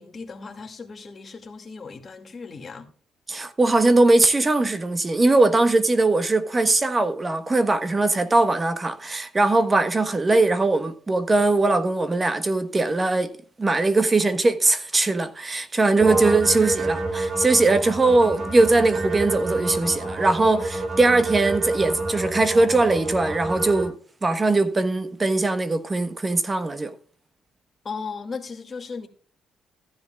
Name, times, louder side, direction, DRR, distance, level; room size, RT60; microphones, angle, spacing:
voice 1, 0.0-2.9 27.8-29.1, left 4 dB, 35° left, 2.4 m, -36 dB
voice 2, 3.3-13.3 13.6-23.9 24.2-26.9, right 2 dB, 25° right, 1.3 m, -20 dB
sound 1, 16.0-23.9, right 2 dB, 50° right, 4.4 m, -28 dB
15.0 x 10.5 x 2.5 m
cardioid pair, 90°, 0 cm